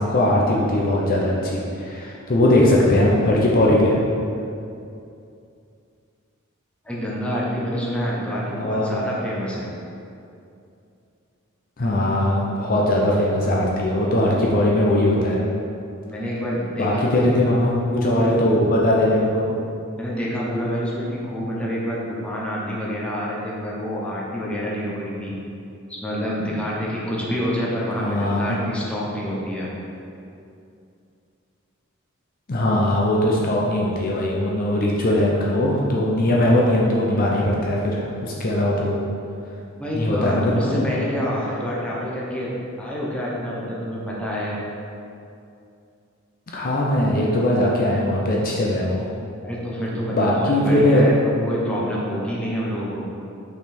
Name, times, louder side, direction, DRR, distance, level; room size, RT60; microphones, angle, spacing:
voice 1, 0.0-4.0 8.5-8.9 11.8-15.4 16.8-19.5 28.0-28.5 32.5-39.0 39.9-40.7 46.5-49.0 50.1-51.1, left 1 dB, 45° left, -3 dB, 0.7 m, -20 dB
voice 2, 6.8-9.7 16.1-17.5 17.9-18.4 20.0-25.3 25.9-29.7 39.8-44.6 49.4-53.0, equal, 5° left, -6 dB, 1.0 m, -27 dB
5.8 x 4.1 x 4.4 m, 2.6 s
head